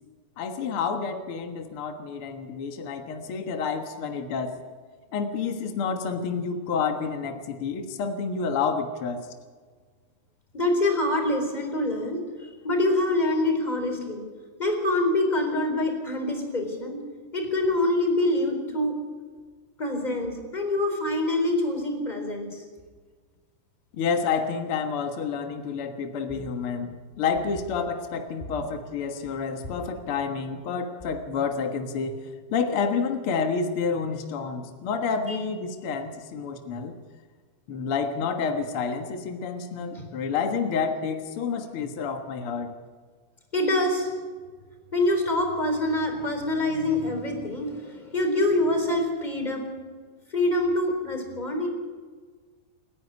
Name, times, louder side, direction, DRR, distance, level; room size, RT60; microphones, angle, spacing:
voice 1, 0.4-4.6 5.1-9.3 23.9-32.2 32.5-37.0 37.7-42.7, left 5 dB, 65° left, 5 dB, 1.3 m, -29 dB
voice 2, 10.5-14.2 14.6-17.0 17.3-19.0 19.8-22.6 26.3-26.4 35.3-35.4 39.9-40.0 43.5-44.1 44.9-49.7 50.3-51.7, left 1 dB, 10° left, 3 dB, 3.8 m, -25 dB
28.5 x 10.5 x 9.8 m, 1.5 s
omnidirectional pair, 4.8 m